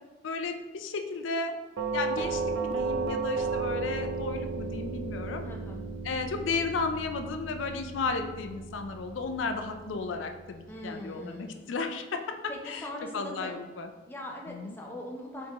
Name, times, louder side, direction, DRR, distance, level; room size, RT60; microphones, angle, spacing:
voice 1, 0.2-1.5 1.9-5.4 6.0-12.4 12.6-12.9 13.1-13.9 14.5-14.8, left 4 dB, 90° left, 6 dB, 0.4 m, -34 dB
Doorbell, 1.8-10.6, right 4 dB, 85° right, 0.5 m, -34 dB
voice 2, 5.4-5.8 10.7-11.6 12.5-13.5 14.1-15.5, left 1 dB, 10° left, -1 dB, 0.5 m, -41 dB
4.4 x 3.5 x 2.9 m, 1.2 s
head